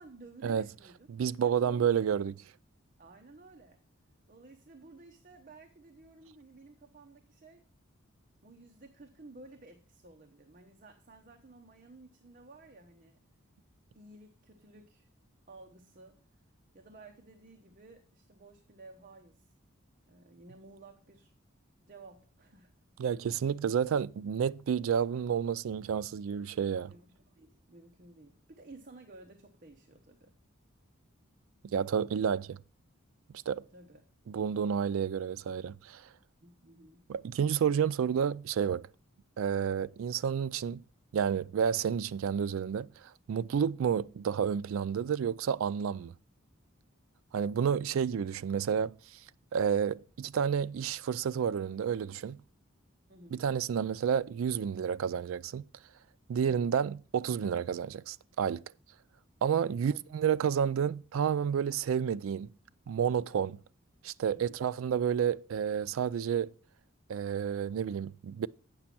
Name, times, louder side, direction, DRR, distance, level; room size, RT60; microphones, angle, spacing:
voice 1, 0.0-1.1 1.4-1.9 3.0-3.8 4.3-7.7 8.4-13.2 13.9-15.1 15.5-16.3 16.7-19.5 20.1-21.3 21.9-22.7 26.9-30.4 33.7-34.0 36.4-37.1 47.8-47.9 53.1-53.4 64.4-64.6, right 2 dB, 40° right, 0.8 m, -54 dB
voice 2, 1.1-2.3 23.0-26.9 31.6-32.6 33.5-33.6 34.3-36.0 37.1-38.9 39.4-40.8 41.1-42.9 43.3-46.1 47.3-48.9 49.5-52.4 53.3-55.6 56.3-58.6 59.4-62.5 62.9-63.6 64.0-66.5 67.1-68.5, right 7 dB, 75° right, 0.3 m, -30 dB
8.7 x 6.1 x 5.8 m
head